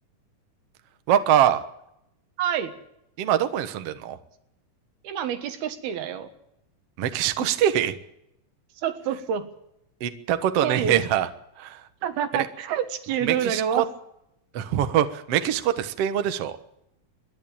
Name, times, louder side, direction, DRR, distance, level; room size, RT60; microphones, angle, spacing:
voice 1, 1.1-1.6 3.2-4.2 7.0-8.0 10.0-11.3 11.6-11.8 12.3-12.5 13.2-13.8 14.5-16.6, right 10 dB, 60° right, 9 dB, 1.7 m, -23 dB
voice 2, 2.4-2.7 5.0-6.3 8.8-9.5 10.6-11.1 12.0-13.8, right 8 dB, 80° right, 8 dB, 3.5 m, -27 dB
26.5 x 11.5 x 8.9 m, 0.79 s
omnidirectional pair, 4.3 m